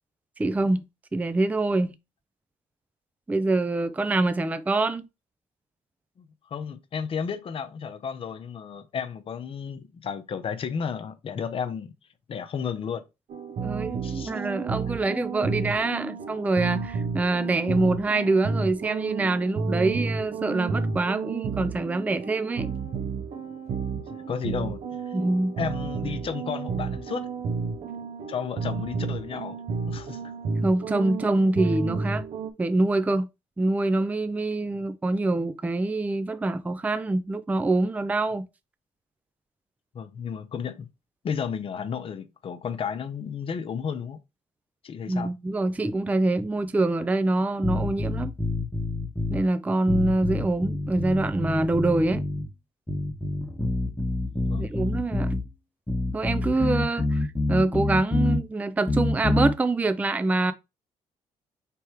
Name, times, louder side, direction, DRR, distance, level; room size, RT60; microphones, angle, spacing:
voice 1, 0.4-0.9 1.1-2.0 3.3-5.1 13.6-22.7 25.1-25.6 30.6-32.2 32.6-33.3 33.6-38.5 45.1-48.3 49.3-52.2 54.6-55.4 56.1-60.5, right 2 dB, 10° right, 0.4 m, -25 dB
voice 2, 6.2-11.9 12.3-13.0 14.0-14.3 17.7-17.8 24.0-25.1 25.6-27.3 28.3-29.6 29.9-30.3 39.9-40.9 41.2-44.2 44.8-45.3 54.4-54.7, left 7 dB, 50° left, 0.7 m, -33 dB
sound 1, 13.3-32.5, right 4 dB, 60° right, 0.7 m, -31 dB
sound 2, 47.6-49.4 49.9-52.5 52.9-55.4 55.9-58.4 58.9-59.5, left 2 dB, 15° left, 1.1 m, -27 dB
3.4 x 3.1 x 4.7 m
cardioid pair, 80°, 12 cm